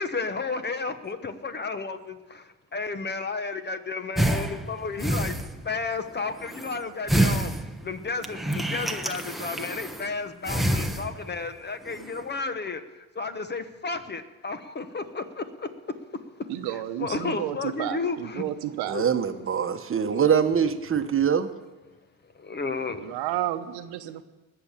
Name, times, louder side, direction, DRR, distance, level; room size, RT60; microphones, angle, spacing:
voice 1, 0.0-5.4 5.6-7.5 7.8-15.7 17.0-18.4 18.9-19.0 20.6-20.7 22.3-23.1, left 4 dB, 25° left, 1.1 m, -32 dB
sound 1, 4.2-5.9 6.3-6.8 7.1-10.1 10.4-11.5 11.8-12.2, right 1 dB, ahead, 1.0 m, -28 dB
voice 2, 16.5-19.0 22.9-24.2, right 12 dB, 80° right, 1.1 m, -31 dB
voice 3, 18.9-21.5, right 7 dB, 35° right, 1.1 m, -23 dB
20.0 x 6.9 x 7.3 m
cardioid pair, 90°, 38 cm